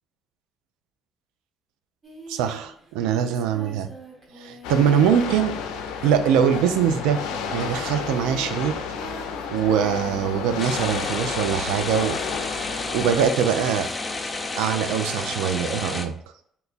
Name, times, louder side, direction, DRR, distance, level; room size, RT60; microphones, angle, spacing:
Singing, 2.0-11.4 11.9-14.8, right 2 dB, 40° right, 1.1 m, -44 dB
voice 1, 2.3-3.9 4.4-5.5 6.0-8.8 9.5-12.2 12.9-13.9 14.5-16.2, right 8 dB, 85° right, 0.3 m, -23 dB
sound 1, 4.6-13.3, left 6 dB, 85° left, 0.3 m, -32 dB
sound 2, 10.6-16.1, left 3 dB, 25° left, 0.5 m, -31 dB
2.9 x 2.3 x 4.0 m
supercardioid pair, 60°, 0 cm